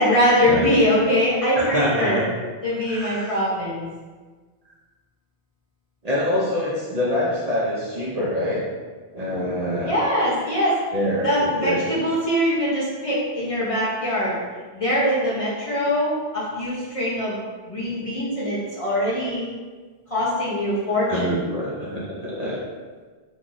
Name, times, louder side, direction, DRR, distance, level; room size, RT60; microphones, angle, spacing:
voice 1, 0.0-2.2 2.6-3.9 9.8-10.8 11.2-14.4 14.7-17.4 17.7-19.5 20.1-21.4, equal, 35° left, -8 dB, 0.7 m, -22 dB
voice 2, 1.6-2.2 2.8-3.3 6.0-8.6 9.1-9.9 10.9-12.0 21.1-22.6, left 1 dB, 45° right, -7 dB, 0.7 m, -25 dB
3.0 x 2.5 x 3.8 m, 1.4 s
omnidirectional pair, 1.1 m